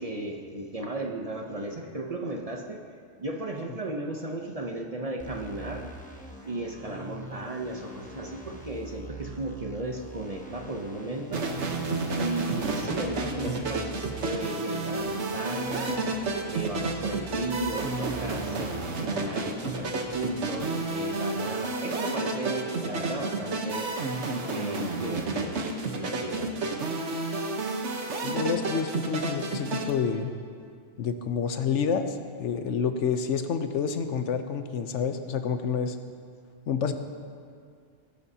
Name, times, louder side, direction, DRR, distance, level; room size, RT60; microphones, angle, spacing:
voice 1, 0.0-2.8 3.2-5.9 6.4-11.5 12.2-16.0 16.5-23.9 24.5-25.6 25.9-26.5, right 2 dB, 35° right, 2 dB, 0.7 m, -35 dB
sound 1, 5.2-20.6, right 2 dB, 5° left, 0.9 m, -44 dB
sound 2, 11.3-29.9, right 3 dB, 75° right, 1.3 m, -31 dB
voice 2, 28.2-30.3 31.0-36.0 36.7-36.9, left 6 dB, 80° left, 8 dB, 1.0 m, -28 dB
17.5 x 11.0 x 2.8 m, 2.3 s
omnidirectional pair, 1.2 m